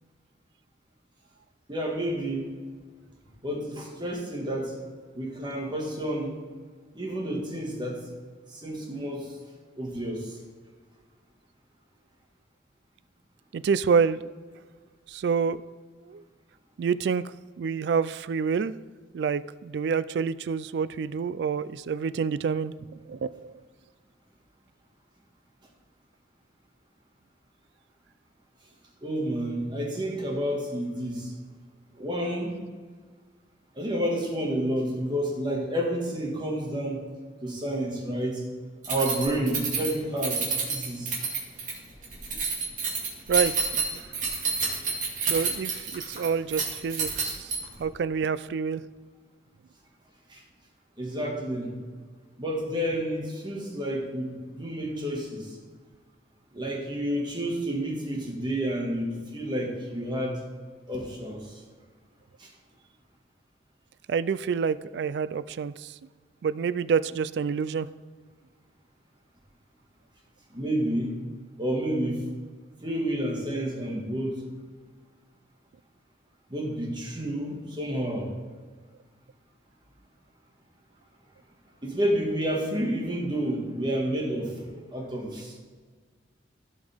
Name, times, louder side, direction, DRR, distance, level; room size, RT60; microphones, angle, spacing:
voice 1, 1.7-2.5 3.4-4.8 5.1-6.3 6.9-8.0 8.5-9.4 9.8-10.4 29.0-31.3 31.9-32.6 33.8-37.0 37.4-38.4 38.9-41.2 50.3-50.4 51.0-51.8 52.4-55.6 56.5-60.4 60.9-61.6 62.4-62.5 70.5-71.2 71.6-72.2 72.8-74.4 76.5-78.3 81.8-85.6, right 1 dB, 25° right, -1 dB, 1.7 m, -30 dB
voice 2, 13.5-14.3 15.1-15.6 16.0-16.2 16.8-17.2 17.6-18.7 19.1-23.5 43.3-44.0 45.3-47.5 47.8-48.8 64.1-65.9 66.4-67.9, right 6 dB, 65° right, 16 dB, 0.3 m, -28 dB
Keys jangling, 38.8-47.9, right 4 dB, 45° right, 2.1 m, -29 dB
15.5 x 5.4 x 3.5 m, 1.5 s
head